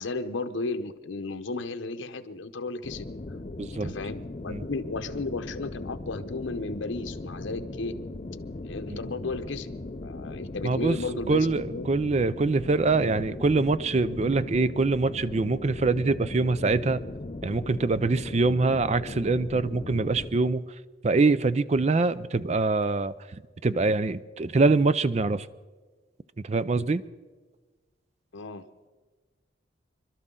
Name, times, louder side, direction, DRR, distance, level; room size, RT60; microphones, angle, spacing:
voice 1, 0.0-3.1 3.7-7.9 8.6-9.7 10.0-11.9 28.3-28.7, left 3 dB, 80° left, 8 dB, 0.8 m, -34 dB
sound 1, 2.8-20.3, left 2 dB, 35° left, 0.5 m, -38 dB
voice 2, 3.6-3.9 4.5-4.6 8.9-9.0 10.6-11.0 11.3-17.0 17.4-20.6 21.0-25.5 26.4-27.0, right 3 dB, 35° right, 16 dB, 0.4 m, -24 dB
26.0 x 12.5 x 3.8 m, 1.3 s
head